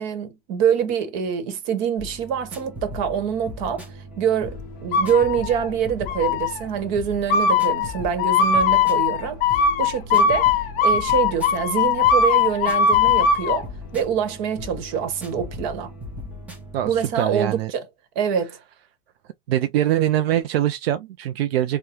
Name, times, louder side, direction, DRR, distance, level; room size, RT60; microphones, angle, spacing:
voice 1, 0.0-3.8 4.2-9.4 9.8-15.9 16.8-17.8 18.1-18.6, right 8 dB, 50° right, 1.2 m, -25 dB
sound 1, 2.0-17.2, left 1 dB, 5° right, 0.7 m, -38 dB
sound 2, 4.9-5.7 6.1-6.6 7.3-13.6, left 5 dB, 30° left, 0.5 m, -20 dB
voice 2, 16.7-17.7 19.5-21.8, right 12 dB, 85° right, 0.5 m, -23 dB
4.9 x 2.2 x 2.9 m
supercardioid pair, 145°, 30 cm